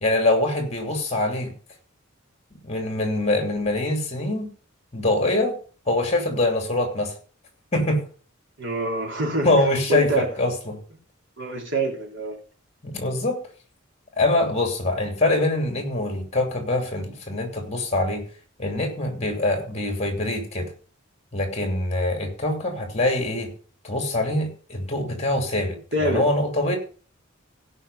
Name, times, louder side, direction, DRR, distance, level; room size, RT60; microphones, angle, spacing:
voice 1, 0.0-1.5 2.6-4.5 4.9-5.5 5.9-7.1 7.7-8.0 9.4-10.8 12.8-13.4 14.2-18.2 18.6-20.7 21.3-23.5 23.8-26.8, left 2 dB, 30° left, 5 dB, 2.8 m, -24 dB
voice 2, 8.6-9.6 9.9-10.3 11.4-12.4 25.9-26.3, right 1 dB, 65° right, 0 dB, 3.6 m, -26 dB
16.5 x 5.7 x 5.5 m, 0.39 s
head